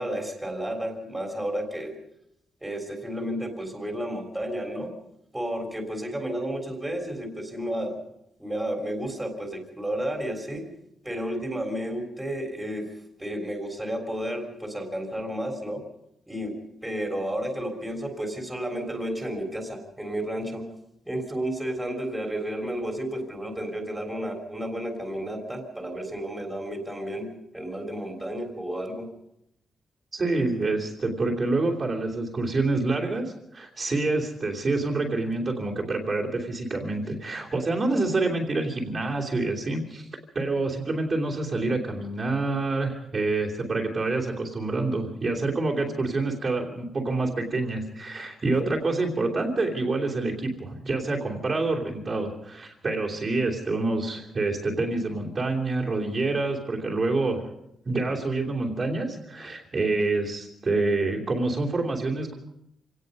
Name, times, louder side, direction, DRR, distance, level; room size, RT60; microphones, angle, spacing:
voice 1, 0.0-1.9 2.6-4.9 5.3-8.0 8.4-10.7 11.0-12.8 13.2-15.8 16.3-20.7 21.1-29.1, right 1 dB, 5° right, 3 dB, 3.5 m, -32 dB
voice 2, 30.1-40.1 40.3-57.4 57.8-62.3, right 3 dB, 30° right, -3 dB, 3.0 m, -27 dB
26.5 x 18.0 x 5.4 m, 0.80 s
wide cardioid pair, 160°, 0 cm